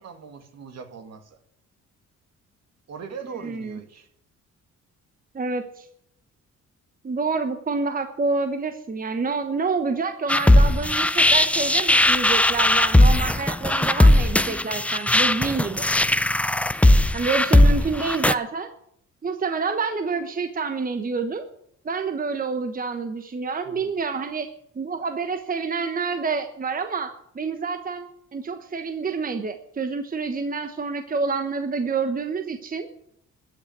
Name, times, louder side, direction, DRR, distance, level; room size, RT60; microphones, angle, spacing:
voice 1, 0.0-1.4 2.9-4.1 23.6-24.0, right 6 dB, 60° right, 6 dB, 2.2 m, -40 dB
voice 2, 3.4-3.8 5.3-5.9 7.0-15.9 17.1-18.7 19.2-21.5 21.8-24.5 24.7-27.1 27.3-32.9, right 4 dB, 30° right, 7 dB, 1.1 m, -28 dB
sound 1, 10.3-18.3, left 1 dB, 5° left, 0.4 m, -18 dB
14.0 x 6.5 x 9.1 m, 0.71 s
cardioid pair, 90°, 30 cm